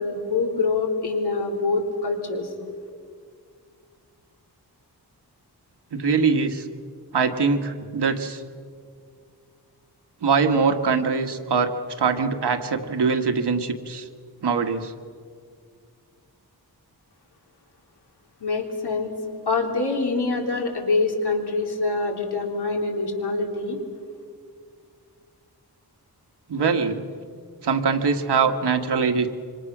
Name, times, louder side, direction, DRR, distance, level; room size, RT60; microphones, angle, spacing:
voice 1, 0.0-2.5 18.4-19.1 19.5-23.8, left 3 dB, 75° left, 2 dB, 3.6 m, -25 dB
voice 2, 5.9-6.6 7.1-8.4 10.2-11.7 12.0-14.1 14.4-14.9 26.5-27.0 27.6-29.3, right 5 dB, 90° right, 6 dB, 1.7 m, -22 dB
26.5 x 26.0 x 6.2 m, 2.1 s
wide cardioid pair, 125°, 39 cm